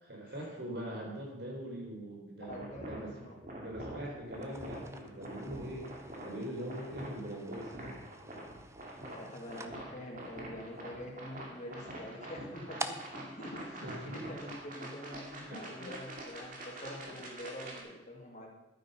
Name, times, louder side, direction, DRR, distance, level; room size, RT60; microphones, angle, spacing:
voice 1, 0.1-3.1 3.5-5.9 6.2-8.0 13.8-14.3 15.5-15.9, right 1 dB, 60° right, -1 dB, 4.0 m, -42 dB
voice 2, 2.5-3.9 9.0-18.5, left 1 dB, 40° left, 0 dB, 2.2 m, -46 dB
sound 1, 2.5-17.8, right 1 dB, 45° right, 2.4 m, -46 dB
sound 2, 4.3-14.7, right 2 dB, 15° right, 0.6 m, -49 dB
12.0 x 9.3 x 5.6 m, 0.98 s
head